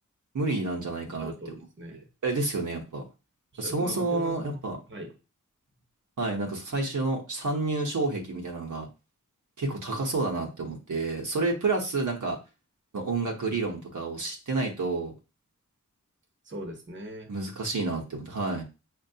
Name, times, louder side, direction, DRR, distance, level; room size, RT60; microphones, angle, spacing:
voice 1, 0.3-1.3 1.9-3.0 3.6-4.8 6.2-8.9 9.6-12.4 12.9-15.1 17.3-18.6, right 3 dB, 65° right, 0 dB, 0.8 m, -29 dB
voice 2, 1.2-2.1 3.5-4.6 4.9-5.1 16.4-17.3, equal, 35° right, 3 dB, 0.9 m, -40 dB
5.8 x 2.2 x 2.7 m, 0.30 s
wide cardioid pair, 85°, 32 cm